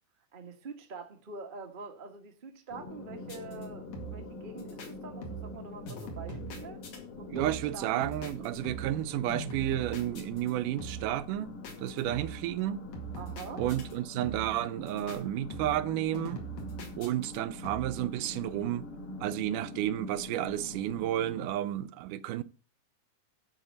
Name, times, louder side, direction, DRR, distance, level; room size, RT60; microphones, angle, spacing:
voice 1, 0.3-6.8 7.2-8.1 13.1-13.7, right 4 dB, 55° right, 0.5 m, -45 dB
sound 1, 2.7-21.5, left 2 dB, 80° left, 3.6 m, -45 dB
sound 2, 3.2-3.7 3.9-4.3 4.6-4.9 5.2-5.6 5.9-7.0 7.4-7.7 8.0-9.0 9.3-10.5 10.8-11.2 11.6-12.5 12.9-14.0 14.2-14.6 14.9-15.2 15.5-17.4 17.6-18.0, right 4 dB, 60° left, 3.3 m, -42 dB
voice 2, 7.3-12.8 13.6-16.4 17.0-18.9 19.2-22.4, right 13 dB, 85° right, 2.2 m, -32 dB
11.5 x 4.3 x 7.8 m
omnidirectional pair, 3.7 m